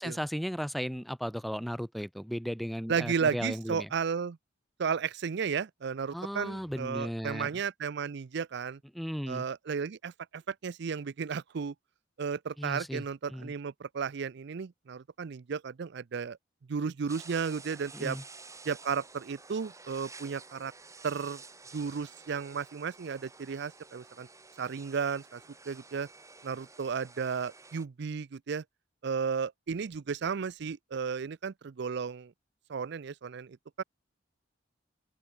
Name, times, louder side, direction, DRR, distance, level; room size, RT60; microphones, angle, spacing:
voice 1, 0.0-3.9 6.1-7.5 8.9-9.4 12.6-13.0 13.3-13.5 17.9-18.2, equal, ahead, 0.4 m, -35 dB
voice 2, 2.9-4.4 4.8-8.8 9.3-11.7 12.2-16.4 16.7-18.2 18.6-20.7 21.0-21.4 21.7-24.3 24.6-25.4 25.7-26.1 26.4-28.6 29.0-32.3 32.7-33.8, right 6 dB, 65° right, 0.5 m, -34 dB
sound 1, 17.1-27.9, right 4 dB, 15° right, 3.0 m, -51 dB
open air
head